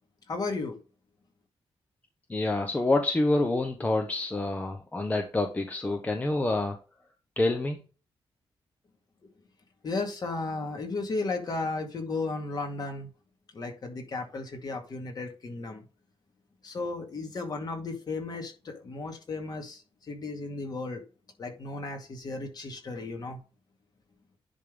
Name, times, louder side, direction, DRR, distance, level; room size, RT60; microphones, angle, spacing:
voice 1, 0.3-0.8 9.8-13.1 13.5-15.8 16.6-19.8 20.1-21.0 21.4-23.4, left 3 dB, 40° left, 3 dB, 2.1 m, -34 dB
voice 2, 2.3-6.8 7.4-7.8, left 2 dB, 15° left, 5 dB, 0.9 m, -27 dB
10.0 x 3.6 x 5.2 m, 0.34 s
wide cardioid pair, 155°, 10 cm